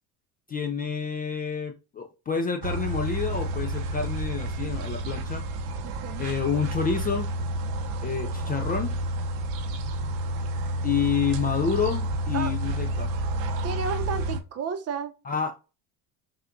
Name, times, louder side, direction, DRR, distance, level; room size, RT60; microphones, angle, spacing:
voice 1, 0.5-5.4 6.2-7.3 8.0-9.0 10.8-13.1 15.3-15.5, left 6 dB, 25° left, 0.3 m, -28 dB
sound 1, 2.6-14.4, right 1 dB, 80° right, 0.8 m, -30 dB
voice 2, 5.8-6.3 12.3-12.5 13.6-15.1, right 6 dB, 40° right, 0.7 m, -32 dB
5.5 x 2.3 x 2.5 m
cardioid pair, 120°, 41 cm